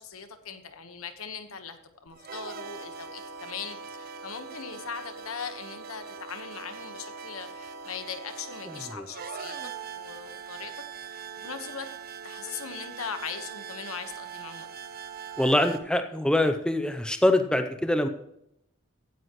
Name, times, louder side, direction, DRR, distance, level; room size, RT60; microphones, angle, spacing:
voice 1, 0.0-9.6 9.9-10.7 11.0-11.9 12.2-14.7, left 6 dB, 80° left, 8 dB, 1.3 m, -40 dB
sound 1, 2.1-15.8, right 6 dB, 45° right, 0.7 m, -41 dB
voice 2, 15.4-18.1, left 1 dB, 5° left, 7 dB, 0.6 m, -24 dB
15.5 x 9.6 x 3.1 m, 0.77 s
head